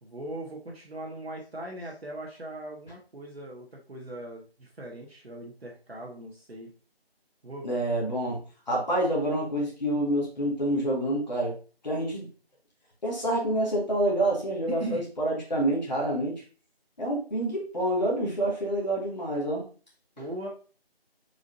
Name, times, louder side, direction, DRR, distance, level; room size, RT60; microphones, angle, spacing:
voice 1, 0.0-6.7 7.4-7.8 14.7-15.1 20.2-20.5, right 1 dB, 75° right, -1 dB, 1.4 m, -39 dB
voice 2, 7.6-8.4 8.7-11.5 11.8-12.3 13.0-16.4 17.0-19.7, right 1 dB, 45° left, -3 dB, 1.7 m, -27 dB
4.9 x 4.1 x 2.7 m, 0.37 s
figure-of-eight pair, 180°, 31 cm